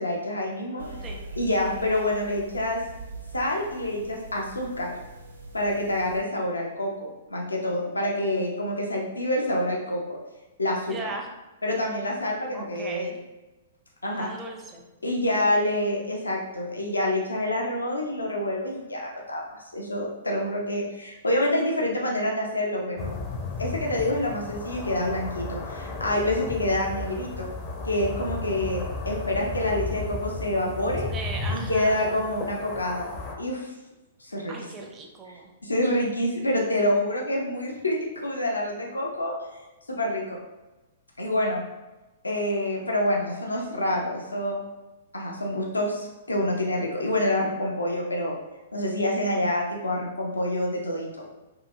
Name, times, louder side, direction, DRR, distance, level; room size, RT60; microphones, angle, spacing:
voice 1, 0.0-0.8 1.4-2.8 3.3-4.9 5.5-10.0 10.6-11.1 11.6-13.1 14.0-14.3 15.0-19.4 19.7-23.1 23.6-27.5 27.8-31.1 31.5-33.7 34.2-34.5 35.3-39.4 39.9-40.4 41.2-41.6 42.2-44.6 45.1-48.3 48.7-51.3, left 1 dB, 90° left, -1 dB, 0.4 m, -27 dB
sound 1, 0.8-6.2, right 2 dB, 85° right, 0.4 m, -42 dB
voice 2, 10.9-11.3 12.5-13.2 14.2-14.8 31.1-32.2 34.5-35.5, right 3 dB, 25° right, 2 dB, 0.5 m, -37 dB
sound 2, 23.0-33.4, left 3 dB, 35° left, 0.4 m, -34 dB
2.7 x 2.4 x 2.5 m, 1.1 s
figure-of-eight pair, 115°, 0 cm